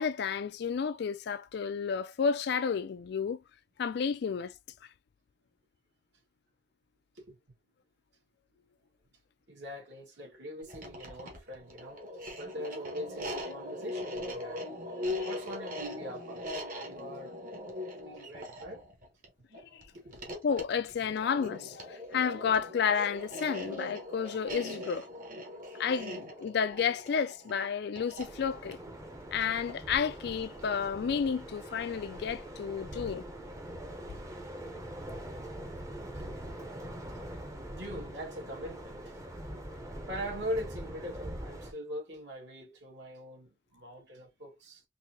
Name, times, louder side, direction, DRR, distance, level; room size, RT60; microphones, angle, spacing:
voice 1, 0.0-3.4 3.8-4.5 15.2-15.3 19.7-19.8 20.4-25.1 25.8-28.8 29.3-33.2, left 6 dB, 60° left, 0.3 m, -31 dB
voice 2, 9.5-12.0 12.4-14.6 14.9-16.6 16.8-17.3 17.9-18.8 20.0-20.2 36.1-36.4 37.7-39.2 39.5-39.6 40.0-44.8, equal, 70° right, 1.7 m, -42 dB
sound 1, 10.6-29.9, left 1 dB, 50° right, 1.2 m, -41 dB
sound 2, 28.2-41.7, right 1 dB, 15° right, 0.7 m, -43 dB
4.0 x 2.7 x 2.7 m
head